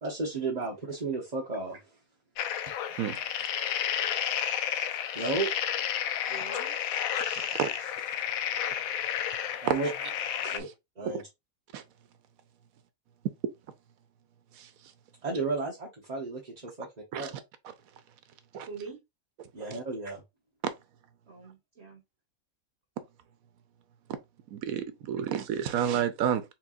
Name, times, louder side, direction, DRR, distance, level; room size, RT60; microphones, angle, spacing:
voice 1, 0.0-2.0 4.9-5.5 5.8-6.0 9.6-9.9 10.5-10.7 11.0-11.2 15.2-16.9 17.2-17.3 19.5-20.2, right 3 dB, 30° right, 1.1 m, -33 dB
sound 1, 2.4-10.6, left 9 dB, 85° left, 1.0 m, -31 dB
voice 2, 2.9-3.3 6.3-6.8 18.6-19.0 21.3-22.0, right 5 dB, 50° right, 1.5 m, -45 dB
voice 3, 7.2-7.9 10.4-10.6 11.1-11.2 11.7-11.8 14.5-14.7 17.1-17.3 18.5-18.7 20.6-20.7 24.5-26.5, right 9 dB, 80° right, 1.1 m, -31 dB
4.5 x 3.9 x 2.5 m
omnidirectional pair, 1.5 m